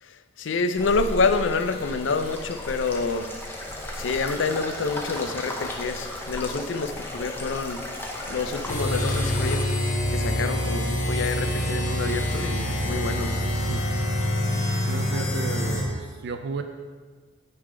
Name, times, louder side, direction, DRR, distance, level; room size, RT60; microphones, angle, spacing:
voice 1, 0.0-3.3 4.0-7.8 8.3-9.6 10.1-13.3, left 4 dB, 70° left, 9 dB, 0.5 m, -27 dB
sound 1, 0.7-9.6, left 1 dB, 10° left, 0.8 m, -35 dB
sound 2, 8.7-15.8, equal, 40° left, 1.1 m, -26 dB
voice 2, 14.9-16.6, right 4 dB, 60° right, 7 dB, 0.4 m, -33 dB
9.5 x 3.8 x 4.9 m, 1.5 s
head